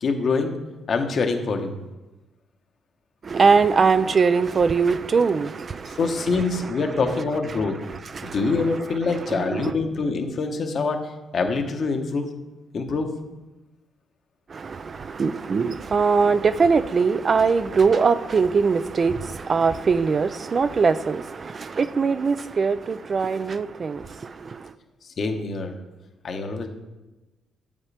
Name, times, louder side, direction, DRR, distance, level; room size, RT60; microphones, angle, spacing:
voice 1, 0.0-0.6 0.9-1.7 6.0-7.8 8.3-11.1 11.3-12.3 12.7-13.1 25.2-25.7 26.2-26.7, left 4 dB, 50° left, 1.0 m, -25 dB
voice 2, 3.2-6.0 6.5-6.7 7.5-7.6 7.9-8.5 9.3-9.7 14.5-24.1 24.4-24.5, right 5 dB, 40° right, 0.3 m, -22 dB
8.2 x 7.3 x 3.3 m
cardioid pair, 90°, 0 cm